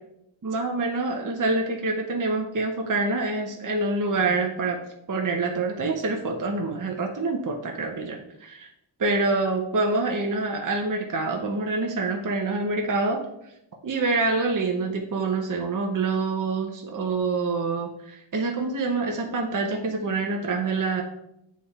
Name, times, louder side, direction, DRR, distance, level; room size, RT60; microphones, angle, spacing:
voice 1, 0.4-4.8 5.1-8.7 9.0-13.2 13.8-21.0, right 3 dB, 40° right, 2 dB, 0.8 m, -26 dB
7.6 x 3.7 x 4.1 m, 0.82 s
wide cardioid pair, 70°, 49 cm